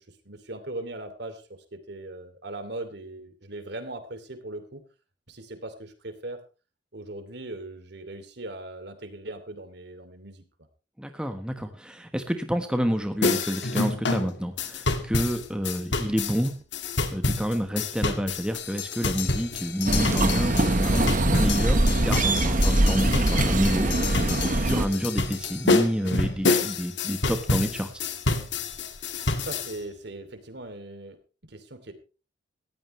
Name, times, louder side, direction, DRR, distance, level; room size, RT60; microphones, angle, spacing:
voice 1, 0.0-4.8 5.3-6.4 6.9-10.4 29.4-31.2 31.4-31.9, right 2 dB, 60° right, 9 dB, 2.8 m, -39 dB
voice 2, 11.0-16.6 17.1-27.9, equal, 5° right, 6 dB, 1.2 m, -29 dB
sound 1, 13.2-29.7, left 3 dB, 60° left, 2.0 m, -28 dB
sound 2, 19.9-24.9, right 1 dB, 40° right, 1.3 m, -22 dB
19.0 x 15.0 x 3.2 m, 0.33 s
head